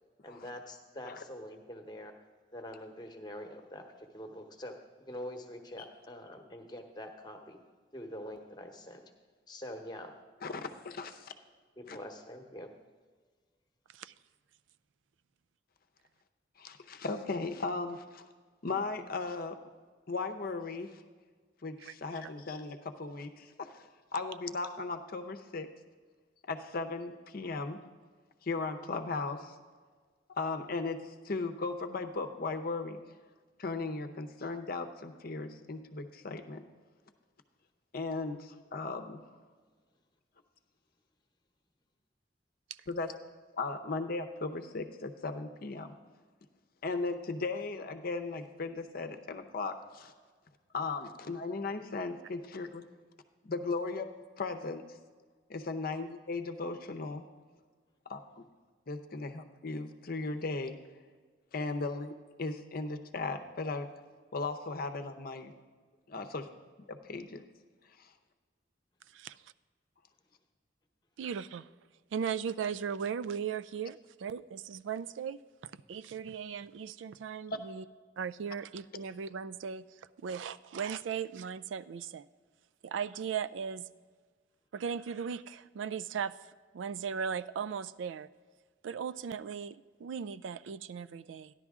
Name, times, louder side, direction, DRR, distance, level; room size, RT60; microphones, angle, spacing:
voice 1, 0.2-2.1 2.5-7.6 7.9-9.0 9.5-10.1 11.8-12.7, left 1 dB, 25° left, 5 dB, 1.0 m, -45 dB
voice 2, 10.4-11.3 11.9-12.0 16.6-18.2 18.6-19.6 20.1-21.0 21.6-25.7 26.4-27.8 28.4-29.6 30.3-33.0 33.6-36.6 37.9-39.2 42.9-43.1 43.5-45.9 46.8-50.1 50.7-52.9 53.4-54.1 54.4-54.8 55.5-57.2 58.1-58.4 58.9-60.8 61.5-62.1 62.4-63.9 64.3-65.5 66.1-66.5 66.9-67.4 68.0-68.1, left 3 dB, 50° left, 7 dB, 0.7 m, -37 dB
voice 3, 71.2-71.7 72.1-75.4 75.9-77.8 78.2-79.8 80.2-82.2 82.8-83.9 84.7-86.3 86.7-88.3 88.8-91.5, right 7 dB, 85° right, 14 dB, 0.3 m, -37 dB
13.5 x 11.0 x 3.6 m, 1.5 s
head